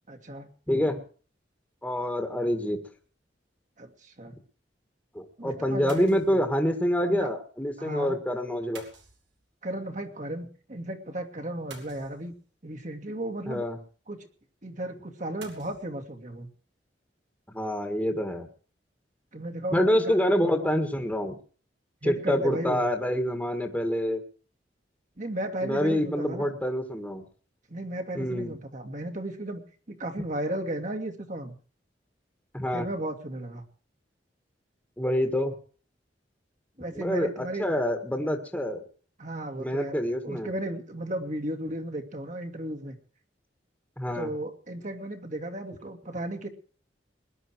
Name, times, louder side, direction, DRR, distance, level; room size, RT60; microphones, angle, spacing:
voice 1, 0.1-0.5 3.8-4.4 5.4-6.4 7.0-7.3 7.8-8.2 9.6-12.3 12.6-13.7 14.1-14.2 14.6-16.5 19.3-20.5 22.0-22.9 25.2-26.6 27.7-29.6 29.9-31.6 32.7-33.6 36.8-37.7 39.2-39.9 40.2-43.0 44.1-46.5, right 1 dB, 45° right, 4 dB, 2.3 m, -35 dB
voice 2, 0.7-1.0 1.8-2.8 5.1-8.8 13.5-13.8 17.5-18.5 19.7-21.4 22.0-24.2 25.6-27.2 28.1-28.5 32.5-32.9 35.0-35.6 36.9-38.8 39.6-40.5 44.0-44.3, equal, 10° left, 4 dB, 1.8 m, -27 dB
sound 1, 3.0-3.2 5.9-6.6 8.8-9.7 11.7-12.6 15.4-15.9, right 4 dB, 80° right, 3.7 m, -49 dB
21.0 x 10.5 x 4.7 m, 0.41 s
head